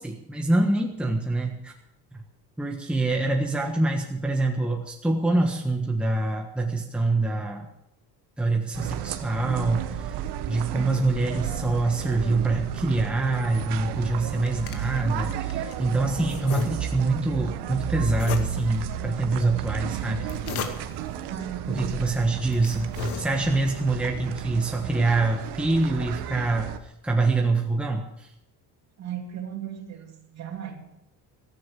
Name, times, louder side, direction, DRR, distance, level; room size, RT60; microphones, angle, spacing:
voice 1, 0.0-1.7 2.6-7.7 8.4-10.2 10.5-20.3 21.7-22.9 23.2-26.7 27.0-28.3, right 2 dB, 5° right, 0 dB, 1.4 m, -25 dB
sound 1, 8.7-26.8, right 10 dB, 70° right, 1.4 m, -33 dB
voice 2, 10.6-11.1 21.3-22.1 29.0-30.8, right 9 dB, 40° right, 2 dB, 2.9 m, -36 dB
sound 2, 14.1-15.8 16.3-17.2 18.1-18.9 20.0-21.1 21.9-22.0 22.4-23.7, left 5 dB, 70° left, 2.3 m, -35 dB
16.5 x 15.0 x 4.9 m, 0.86 s
cardioid pair, 150°, 41 cm